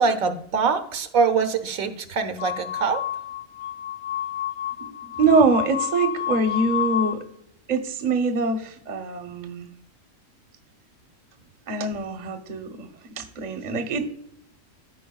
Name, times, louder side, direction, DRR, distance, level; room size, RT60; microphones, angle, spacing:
voice 1, 0.0-3.0, right 5 dB, 85° right, 6 dB, 1.3 m, -23 dB
sound 1, 2.4-7.2, left 11 dB, 85° left, 1.1 m, -30 dB
voice 2, 4.8-7.2 7.7-9.7 11.7-12.9 13.2-14.1, right 3 dB, 40° right, 6 dB, 0.8 m, -24 dB
13.5 x 4.6 x 2.3 m, 0.71 s
omnidirectional pair, 1.4 m